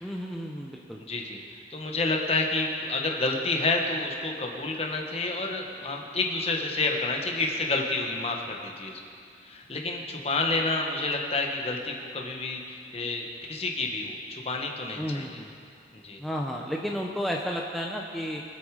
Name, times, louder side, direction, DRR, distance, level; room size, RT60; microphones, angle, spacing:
voice 1, 0.0-1.0 15.0-15.5 16.2-18.4, equal, ahead, -1 dB, 0.7 m, -32 dB
voice 2, 1.1-9.0 9.4-15.4 15.9-16.2, left 3 dB, 35° left, 1 dB, 1.5 m, -29 dB
24.0 x 8.6 x 5.0 m, 2.4 s
head